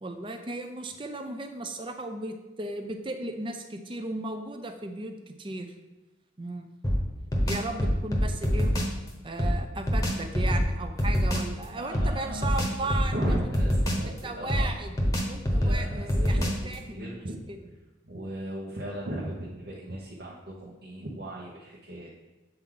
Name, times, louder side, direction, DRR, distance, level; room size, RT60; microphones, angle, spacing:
voice 1, 0.0-5.7 6.4-6.7 7.4-8.8 9.2-13.5 14.2-14.9 15.3-17.7, right 2 dB, 25° right, 6 dB, 0.5 m, -36 dB
sound 1, 6.8-9.0 9.4-11.5 11.9-14.2 14.5-16.7, equal, 20° left, 1.0 m, -26 dB
voice 2, 11.7-12.5 12.8-14.8 15.6-16.5 16.8-17.5 18.0-22.2, right 1 dB, 55° right, -4 dB, 0.9 m, -37 dB
7.9 x 4.6 x 3.8 m, 1.1 s
head